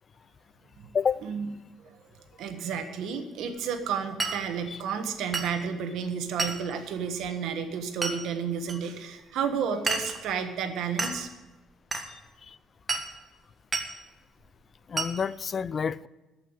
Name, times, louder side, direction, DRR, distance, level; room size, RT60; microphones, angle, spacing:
voice 1, 2.4-11.3, right 7 dB, 75° right, 1.4 m, -31 dB
Glass, 4.2-4.4 5.3-5.6 6.4-6.6 8.0-8.2 8.7-8.8 9.9-10.2 11.0-11.2 11.9-12.1 12.9-13.1 13.7-13.9 15.0-15.2, right 3 dB, 20° right, 1.7 m, -30 dB
voice 2, 14.9-16.1, left 6 dB, 40° left, 0.4 m, -29 dB
13.5 x 5.8 x 9.6 m
cardioid pair, 90°, 0 cm